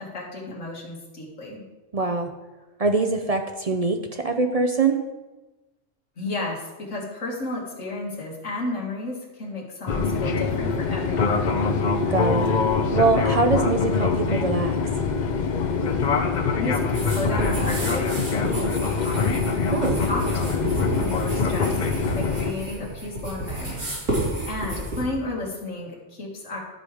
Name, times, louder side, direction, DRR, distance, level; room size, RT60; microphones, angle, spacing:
voice 1, 0.0-1.6 6.2-11.5 16.6-19.4 20.1-26.6, left 2 dB, 65° left, -3 dB, 2.2 m, -33 dB
voice 2, 1.9-2.3 2.8-5.0 12.1-12.5 12.9-14.8 19.7-20.0, right 3 dB, 45° right, 5 dB, 0.5 m, -23 dB
Fixed-wing aircraft airplane, 9.9-22.5, left 4 dB, 45° left, 0.6 m, -24 dB
sound 1, 16.9-25.0, right 1 dB, 80° right, 3.5 m, -31 dB
11.5 x 5.4 x 4.9 m, 1.1 s
omnidirectional pair, 1.4 m